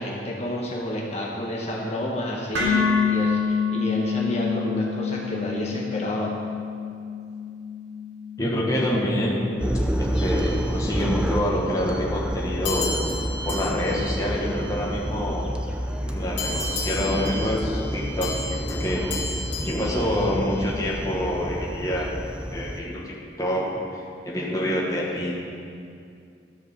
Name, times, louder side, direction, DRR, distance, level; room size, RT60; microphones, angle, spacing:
voice 1, 0.0-6.3, equal, 35° left, -3 dB, 1.2 m, -29 dB
sound 1, 2.5-10.7, left 5 dB, 70° right, 2.3 m, -28 dB
voice 2, 8.4-9.5 10.2-12.9 13.4-15.5 16.0-19.2 19.6-22.1 22.5-23.6 23.9-25.3, left 1 dB, 20° left, -4 dB, 1.3 m, -26 dB
sound 2, 9.6-22.8, equal, 5° right, 0.5 m, -29 dB
sound 3, 10.1-11.4 12.6-15.3 16.4-20.9, left 2 dB, 60° left, 2.1 m, -35 dB
13.0 x 5.1 x 6.7 m, 2.4 s
head